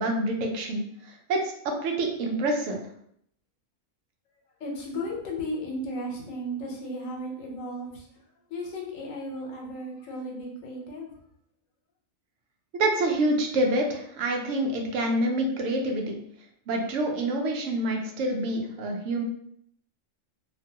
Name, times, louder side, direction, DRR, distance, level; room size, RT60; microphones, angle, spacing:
voice 1, 0.0-2.8 12.7-16.2 16.7-19.2, right 1 dB, 75° right, 2 dB, 0.9 m, -27 dB
voice 2, 4.6-8.2 8.5-11.1, equal, 80° left, -1 dB, 1.1 m, -35 dB
2.6 x 2.3 x 2.7 m, 0.70 s
omnidirectional pair, 1.4 m